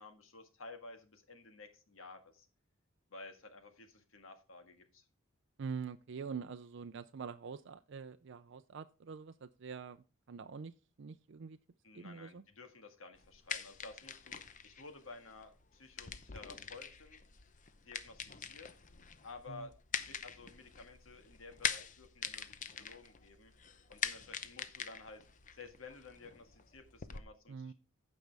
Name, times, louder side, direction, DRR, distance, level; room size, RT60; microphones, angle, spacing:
voice 1, 0.0-2.5 3.1-5.0 11.8-17.2 17.8-18.7 19.2-19.7 20.0-23.5 23.9-25.3 25.5-27.7, left 3 dB, 75° left, 7 dB, 1.7 m, -53 dB
voice 2, 5.6-10.7 11.0-11.6 11.9-12.4 19.5-19.7 27.5-27.7, right 6 dB, 60° right, 9 dB, 0.4 m, -45 dB
sound 1, 13.2-27.2, left 7 dB, 40° left, 0.7 m, -44 dB
15.5 x 5.3 x 3.4 m, 0.33 s
head